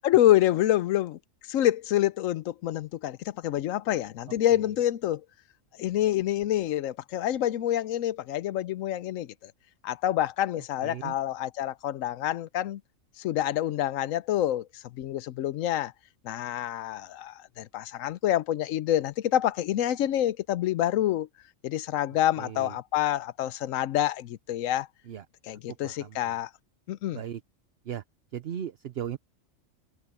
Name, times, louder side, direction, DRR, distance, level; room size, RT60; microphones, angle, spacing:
voice 1, 0.0-1.2 1.5-5.2 5.8-9.5 9.8-12.8 13.2-15.9 16.2-21.3 21.6-24.9 25.5-26.5 26.9-27.2, left 12 dB, 85° left, 1.0 m, -27 dB
voice 2, 10.8-11.2 22.4-22.8 25.0-25.3 25.7-26.4 27.1-27.4 27.8-28.0 28.3-29.2, right 9 dB, 55° right, 0.9 m, -37 dB
omnidirectional pair, 1.3 m